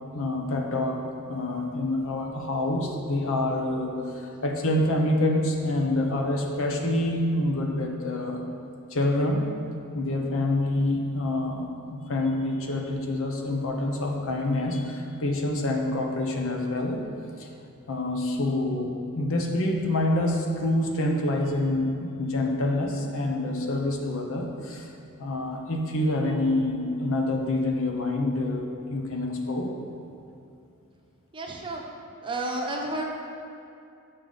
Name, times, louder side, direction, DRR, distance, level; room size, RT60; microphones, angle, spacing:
voice 1, 0.1-8.5 8.9-9.5 9.9-17.0 17.4-17.5 17.9-24.9 25.2-29.7, left 1 dB, 65° left, 2 dB, 0.8 m, -27 dB
voice 2, 31.3-31.9 32.2-33.1, right 2 dB, 25° right, -1 dB, 0.8 m, -31 dB
6.7 x 6.0 x 4.0 m, 2.6 s
head